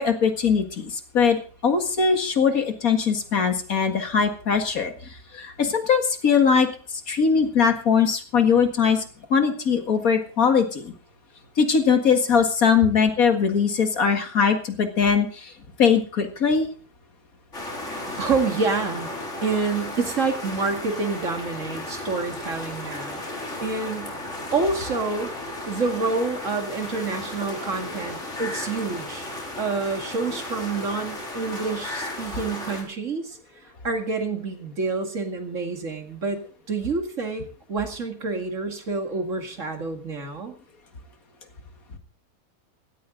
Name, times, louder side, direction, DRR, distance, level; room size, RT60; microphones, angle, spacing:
voice 1, 0.0-4.9 5.3-9.0 9.3-10.9 11.6-15.5 15.8-16.7, left 6 dB, 70° left, 6 dB, 2.3 m, -21 dB
sound 1, 17.5-32.8, left 1 dB, 50° left, 4.2 m, -34 dB
voice 2, 18.2-19.1 19.4-23.3 23.6-24.1 24.5-25.3 25.7-29.3 29.6-33.4 33.8-40.5, right 4 dB, 55° right, 5 dB, 2.4 m, -28 dB
16.5 x 13.5 x 3.8 m, 0.39 s
omnidirectional pair, 1.6 m